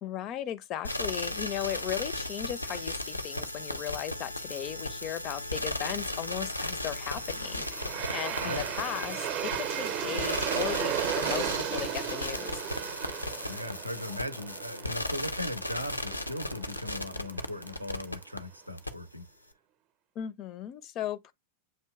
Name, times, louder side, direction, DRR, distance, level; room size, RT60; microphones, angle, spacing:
voice 1, 0.0-7.7 8.1-12.6 20.2-21.3, left 11 dB, 35° left, 0.4 m, -36 dB
sound 1, 0.8-18.4 18.8-18.9, left 1 dB, 85° left, 0.5 m, -36 dB
Aircraft, 6.9-17.9, right 11 dB, 40° right, 0.6 m, -36 dB
voice 2, 13.4-19.3, left 1 dB, 90° right, 0.5 m, -38 dB
7.6 x 2.8 x 2.3 m
figure-of-eight pair, 90°, 0 cm